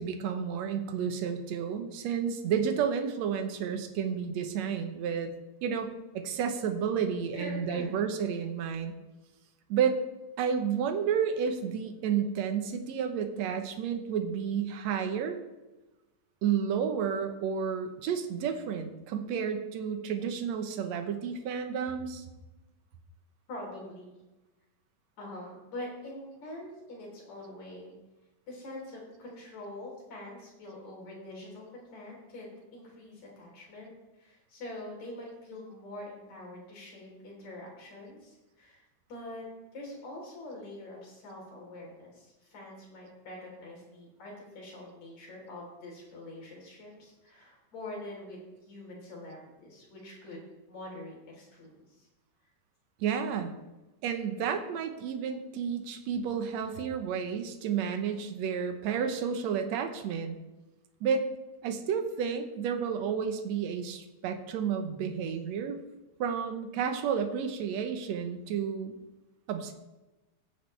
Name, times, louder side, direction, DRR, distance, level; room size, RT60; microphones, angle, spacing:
voice 1, 0.0-5.3 5.6-8.9 9.7-10.0 10.4-15.4 16.4-22.3 53.0-53.6 54.0-60.4 61.0-61.3 61.6-65.8 66.2-69.0 69.5-69.7, right 7 dB, 70° right, 6 dB, 2.1 m, -31 dB
voice 2, 7.3-7.9 13.4-13.5 22.0-22.4 23.5-24.2 25.2-27.9 28.5-38.8 39.1-50.4 50.7-52.1, left 1 dB, 70° left, -3 dB, 4.9 m, -45 dB
17.5 x 7.3 x 3.3 m, 1.1 s
omnidirectional pair, 3.4 m